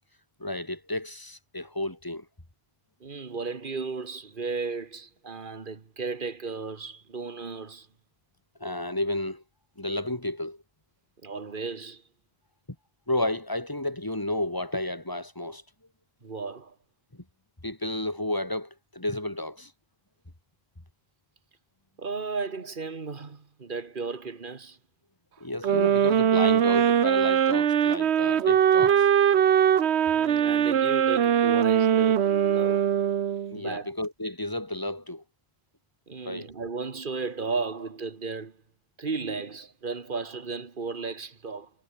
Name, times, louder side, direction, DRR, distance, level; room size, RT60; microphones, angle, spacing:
voice 1, 0.4-2.2 8.6-9.4 9.8-10.6 13.1-15.6 17.6-19.7 25.4-29.1 33.5-35.2 36.2-36.5, left 1 dB, 20° left, 2.7 m, -31 dB
voice 2, 3.0-7.9 11.2-12.0 16.2-16.8 22.0-24.8 30.1-32.9 33.6-33.9 36.1-38.6 39.0-41.7, right 4 dB, 50° right, 1.8 m, -35 dB
sound 1, 25.6-33.6, right 9 dB, 85° right, 1.2 m, -21 dB
omnidirectional pair, 1.1 m